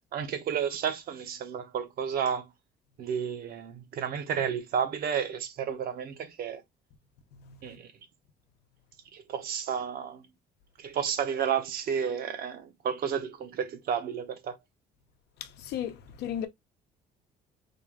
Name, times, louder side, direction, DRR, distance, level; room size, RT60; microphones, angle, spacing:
voice 1, 0.1-2.5 3.0-6.6 7.6-7.9 9.1-10.2 10.8-14.6, right 7 dB, 60° right, 0.9 m, -31 dB
voice 2, 7.3-7.8 15.4-16.5, left 10 dB, 80° left, 0.8 m, -36 dB
3.7 x 2.3 x 3.6 m
cardioid pair, 110°, 17 cm